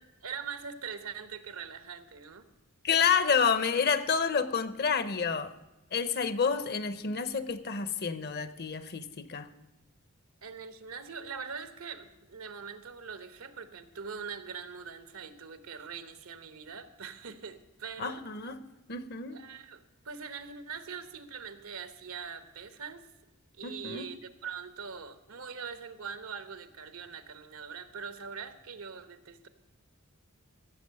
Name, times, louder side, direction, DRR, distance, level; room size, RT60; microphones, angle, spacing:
voice 1, 0.2-2.4 10.4-18.2 19.3-23.0 23.6-29.5, right 6 dB, 90° right, 1.1 m, -42 dB
voice 2, 2.8-5.5 5.9-9.5 18.0-18.6 18.9-19.4 23.6-24.1, left 6 dB, 50° left, 0.8 m, -29 dB
15.5 x 7.6 x 6.4 m
head